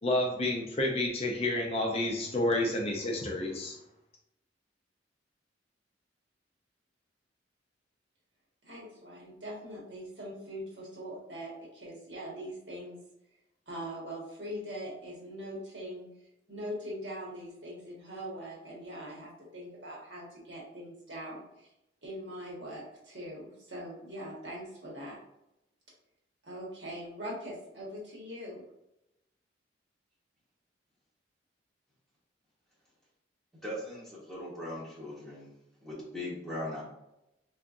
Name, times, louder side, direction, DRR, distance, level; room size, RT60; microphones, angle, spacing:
voice 1, 0.0-3.8, left 1 dB, 35° left, 0 dB, 0.5 m, -30 dB
voice 2, 8.6-13.0 13.7-16.1 16.5-21.7 22.0-25.2 26.4-28.6, equal, 70° right, -4 dB, 1.4 m, -42 dB
voice 3, 33.6-35.5 35.8-36.8, left 1 dB, ahead, -8 dB, 1.2 m, -39 dB
3.5 x 3.2 x 2.5 m, 0.87 s
head